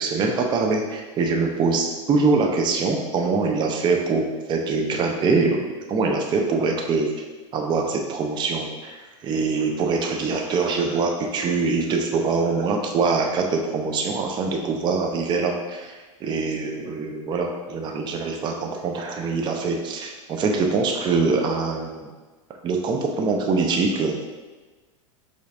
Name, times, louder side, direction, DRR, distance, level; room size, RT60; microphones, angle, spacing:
voice 1, 0.0-7.1 7.5-22.1 22.6-24.3, right 4 dB, 30° right, 2 dB, 0.6 m, -24 dB
5.2 x 3.9 x 2.5 m, 1.3 s
hypercardioid pair, 120°, 16 cm